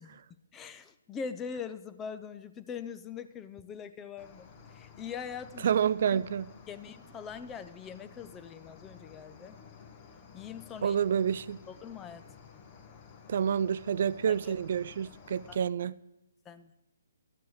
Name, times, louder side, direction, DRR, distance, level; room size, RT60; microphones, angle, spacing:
voice 1, 0.5-5.7 6.1-6.3 6.7-9.6 10.3-11.0 11.7-12.2 14.3-14.5 15.5-15.6 16.5-16.7, left 6 dB, 15° left, 0.6 m, -42 dB
Cricket, 4.2-15.6, left 6 dB, 35° left, 1.5 m, -53 dB
voice 2, 5.6-6.5 10.8-11.6 13.3-15.9, right 8 dB, 55° right, 0.3 m, -28 dB
12.5 x 9.3 x 6.5 m
hypercardioid pair, 145°, 0 cm